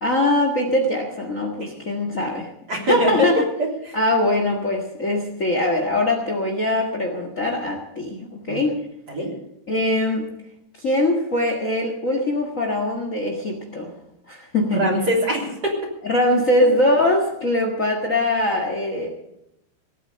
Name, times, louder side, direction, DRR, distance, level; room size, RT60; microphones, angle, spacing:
voice 1, 0.0-3.3 3.9-8.7 9.7-10.2 10.8-13.9 14.3-14.9 16.0-19.1, left 1 dB, 75° left, 3 dB, 0.7 m, -22 dB
voice 2, 2.7-4.0 8.5-8.6 9.1-9.3 14.7-15.9, left 1 dB, 25° right, -1 dB, 3.5 m, -23 dB
18.5 x 9.1 x 6.8 m, 0.81 s
omnidirectional pair, 4.5 m